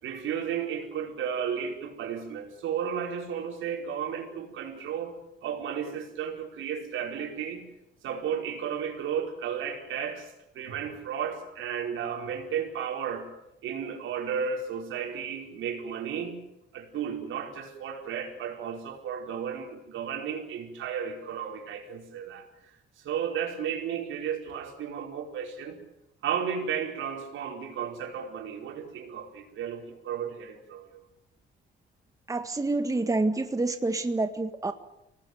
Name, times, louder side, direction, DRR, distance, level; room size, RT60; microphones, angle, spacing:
voice 1, 0.0-5.2 5.4-7.6 8.0-13.3 13.6-16.4 16.7-22.5 23.0-25.8 26.2-31.0, right 7 dB, 80° right, 2 dB, 4.8 m, -33 dB
voice 2, 32.3-34.7, right 2 dB, 15° right, 8 dB, 1.7 m, -27 dB
25.5 x 18.5 x 9.4 m, 0.88 s
cardioid pair, 90°, 20 cm